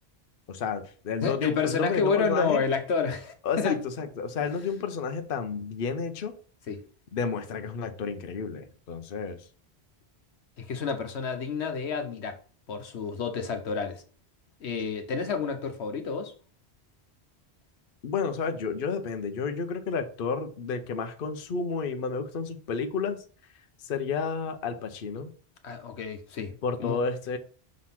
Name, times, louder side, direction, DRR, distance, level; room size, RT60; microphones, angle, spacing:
voice 1, 0.5-2.6 3.4-6.4 7.1-9.4 18.0-23.2 23.8-25.3 26.6-27.4, left 5 dB, 60° left, 0.9 m, -31 dB
voice 2, 1.2-3.8 6.7-6.8 10.6-12.4 12.7-14.0 14.6-16.3 25.6-26.5 26.8-27.0, left 5 dB, 85° left, 1.3 m, -29 dB
6.2 x 3.9 x 5.7 m
omnidirectional pair, 1.1 m